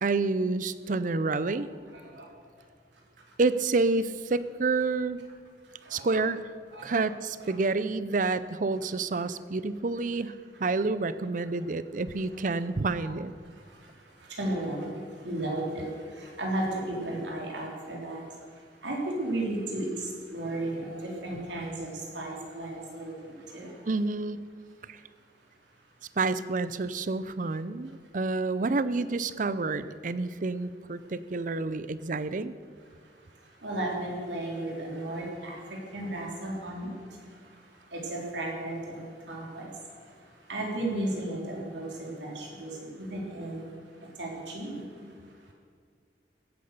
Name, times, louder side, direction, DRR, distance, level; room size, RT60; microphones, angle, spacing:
voice 1, 0.0-1.7 3.4-5.2 5.9-6.4 6.8-10.3 10.6-13.3 23.9-24.4 24.9-25.0 26.2-32.5, right 3 dB, 45° right, 15 dB, 0.5 m, -28 dB
voice 2, 1.9-2.3 2.9-3.4 5.6-6.3 6.7-7.1 7.4-7.6 10.7-10.9 11.4-11.6 12.1-13.1 13.4-23.9 24.8-26.2 27.8-28.1 31.0-31.1 32.8-45.5, right 1 dB, 85° right, -1 dB, 3.7 m, -36 dB
15.5 x 9.6 x 6.8 m, 2.1 s
head